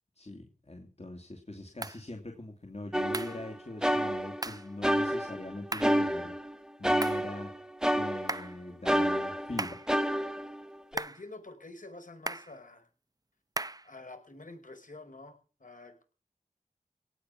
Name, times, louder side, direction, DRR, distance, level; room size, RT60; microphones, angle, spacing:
voice 1, 0.2-6.3 6.8-7.5 7.9-9.8, left 2 dB, 50° left, 2 dB, 2.8 m, -42 dB
sound 1, 1.8-2.0 3.1-3.4 4.4-4.7 5.7-6.0 7.0-7.3 8.3-8.6 9.6-9.9 11.0-11.3 12.3-12.6 13.6-13.9, right 2 dB, 25° right, 0.7 m, -36 dB
sound 2, 2.9-4.5 4.8-6.5 6.8-8.5 8.9-11.0, equal, 5° right, 1.1 m, -29 dB
voice 2, 10.9-12.9 13.8-16.0, left 2 dB, 70° left, 5 dB, 5.2 m, -48 dB
18.0 x 5.9 x 9.9 m, 0.38 s
wide cardioid pair, 40°, 14 cm